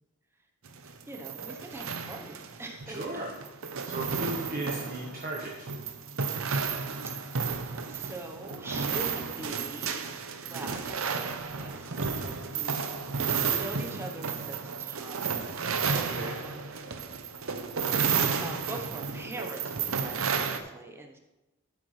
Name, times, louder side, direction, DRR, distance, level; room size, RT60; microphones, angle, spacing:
sound 1, 0.7-20.6, right 5 dB, 65° right, 0.8 m, -32 dB
voice 1, 1.1-3.2 7.1-7.6 7.9-12.7 13.6-15.9 16.2-16.7 17.3-17.4 18.4-21.2, right 2 dB, 10° right, 2 dB, 0.9 m, -43 dB
voice 2, 2.9-3.3 3.8-5.8 15.9-16.4, right 2 dB, 40° right, -3 dB, 1.3 m, -36 dB
12.5 x 7.9 x 3.3 m, 1.0 s
head